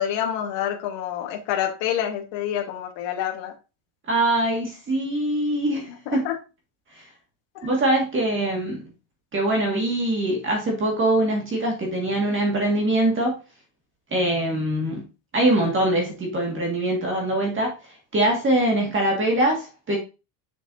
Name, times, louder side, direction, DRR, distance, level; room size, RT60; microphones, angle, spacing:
voice 1, 0.0-3.5 5.9-6.4 7.6-7.7, left 10 dB, 60° left, 1.6 m, -27 dB
voice 2, 4.1-6.2 6.9-7.1 7.6-8.9 9.3-13.4 14.1-15.0 15.3-20.0, right 1 dB, 25° right, 1.9 m, -23 dB
7.2 x 6.5 x 2.7 m
cardioid pair, 170°, 50 cm